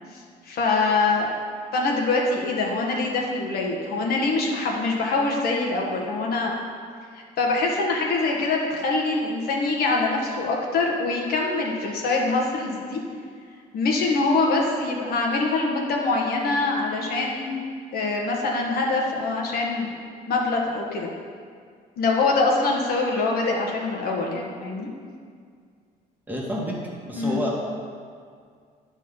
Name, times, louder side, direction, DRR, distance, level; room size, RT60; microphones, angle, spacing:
voice 1, 0.5-1.3 1.7-6.6 7.4-13.0 13.7-17.6 17.9-20.0 20.3-21.1 22.0-24.9 27.1-27.4, left 3 dB, 65° left, -1 dB, 1.4 m, -24 dB
voice 2, 26.3-26.8 27.0-27.6, equal, 10° right, -4 dB, 1.9 m, -28 dB
9.9 x 4.7 x 5.5 m, 2.1 s
cardioid pair, 110°, 17 cm